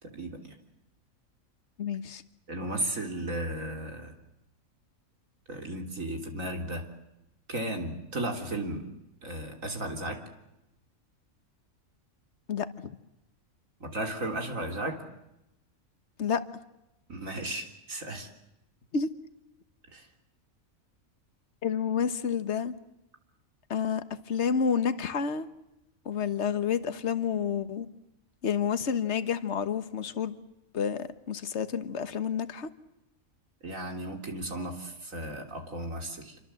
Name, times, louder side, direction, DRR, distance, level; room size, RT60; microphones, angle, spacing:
voice 1, 0.0-0.6 2.5-4.1 5.5-6.9 7.5-8.9 9.2-10.2 13.8-15.0 17.1-18.3 19.9-20.1 33.6-36.4, right 1 dB, 75° right, 3 dB, 3.8 m, -35 dB
voice 2, 1.8-2.2 12.5-13.0 16.2-16.4 18.9-19.1 21.6-22.7 23.7-25.5 26.0-27.9 28.4-30.4 30.7-32.7, left 7 dB, 55° left, 11 dB, 1.5 m, -29 dB
27.5 x 25.0 x 7.7 m, 0.88 s
omnidirectional pair, 1.4 m